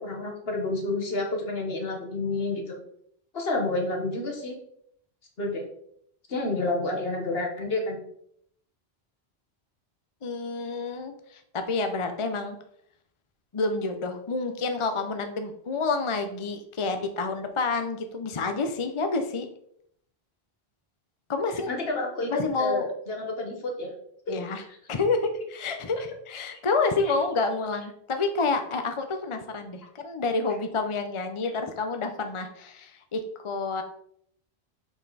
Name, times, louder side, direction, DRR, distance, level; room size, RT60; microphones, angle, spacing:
voice 1, 0.0-2.8 3.3-4.5 5.4-5.7 6.3-8.0 21.7-23.9, left 2 dB, 70° left, 2 dB, 1.7 m, -29 dB
voice 2, 10.2-12.6 13.5-19.5 21.3-21.7 22.3-22.9 24.3-24.6 24.9-33.8, left 3 dB, 35° left, 7 dB, 0.7 m, -29 dB
6.7 x 5.7 x 4.1 m, 0.69 s
omnidirectional pair, 1.1 m